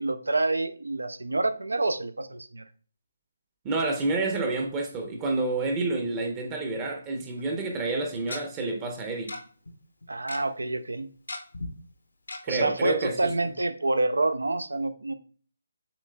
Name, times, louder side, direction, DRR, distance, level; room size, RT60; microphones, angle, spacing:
voice 1, 0.0-2.6 10.1-11.1 12.5-15.1, right 2 dB, 85° right, 11 dB, 0.4 m, -27 dB
voice 2, 3.6-9.3 12.4-13.3, right 3 dB, 20° right, 3 dB, 0.7 m, -29 dB
Tick-tock, 7.4-7.5 8.3-8.4 9.3-9.4 9.7-9.8 10.0-10.4 11.3-11.7 12.3-12.4 12.8-12.9 13.2-13.3, left 2 dB, 80° left, 0.8 m, -36 dB
6.9 x 3.1 x 2.2 m, 0.43 s
figure-of-eight pair, 150°, 0 cm